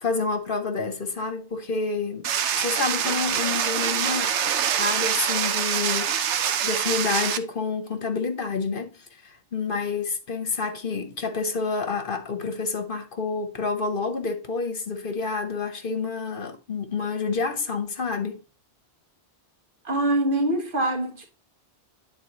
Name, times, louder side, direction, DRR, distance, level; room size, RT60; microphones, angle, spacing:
voice 1, 0.0-2.3 2.5-18.4, left 4 dB, 50° left, 1.2 m, -29 dB
sound 1, 2.2-7.4, right 9 dB, 80° right, 1.0 m, -25 dB
voice 2, 19.8-21.3, right 1 dB, 50° right, 1.3 m, -24 dB
9.7 x 3.9 x 4.0 m
omnidirectional pair, 1.2 m